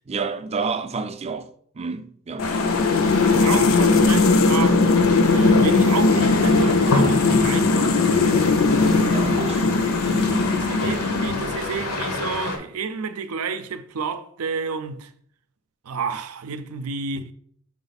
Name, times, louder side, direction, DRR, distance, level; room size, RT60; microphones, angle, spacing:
voice 1, 0.1-1.5 1.7-2.5 9.0-9.7 10.1-10.5, right 4 dB, 30° right, 0.4 m, -30 dB
sound 1, 2.4-12.6, left 2 dB, 85° left, 1.2 m, -28 dB
sound 2, 2.4-11.7, left 3 dB, 65° left, 0.5 m, -19 dB
voice 2, 2.9-4.8 5.2-8.0 10.3-15.1 15.8-17.3, right 5 dB, 85° right, 0.5 m, -30 dB
6.1 x 4.3 x 4.0 m
head